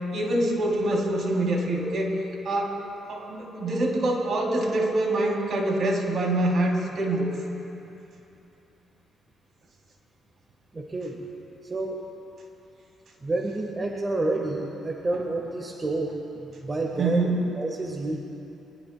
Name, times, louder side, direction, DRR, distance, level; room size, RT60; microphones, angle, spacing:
voice 1, 0.1-2.1 2.4-2.7 3.1-7.4 17.0-17.4, right 1 dB, 60° right, 0 dB, 3.0 m, -25 dB
voice 2, 10.7-11.2 11.6-12.0 13.2-17.3 17.6-18.2, right 2 dB, 30° right, 1 dB, 1.3 m, -29 dB
23.0 x 19.5 x 2.2 m, 2.9 s
cardioid pair, 90°, 0 cm